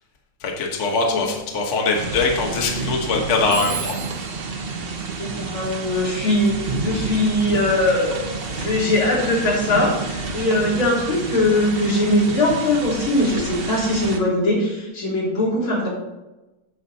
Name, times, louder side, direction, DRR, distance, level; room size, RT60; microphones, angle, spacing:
voice 1, 0.6-3.9, left 3 dB, 40° left, 0 dB, 1.4 m, -22 dB
sound 1, 1.9-14.2, right 4 dB, 45° right, 0.7 m, -29 dB
Telephone, 3.5-6.0, right 8 dB, 65° right, 1.8 m, -35 dB
voice 2, 5.2-8.2 8.5-15.9, left 1 dB, 70° left, -5 dB, 4.0 m, -21 dB
9.9 x 7.1 x 4.1 m, 1.0 s
omnidirectional pair, 2.3 m